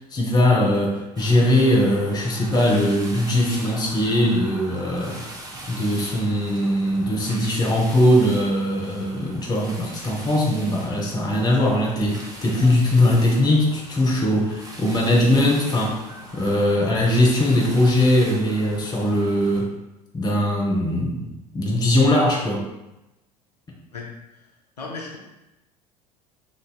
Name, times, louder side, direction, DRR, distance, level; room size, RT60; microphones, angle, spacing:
voice 1, 0.1-5.2 5.7-16.0 16.3-19.7 20.1-21.3 21.5-22.6, left 1 dB, 20° left, -2 dB, 0.7 m, -20 dB
sound 1, 1.2-19.6, right 1 dB, 20° right, 0.7 m, -41 dB
voice 2, 24.8-25.2, left 4 dB, 85° left, -2 dB, 0.5 m, -35 dB
3.1 x 2.5 x 2.2 m, 0.95 s
figure-of-eight pair, 70°, 20 cm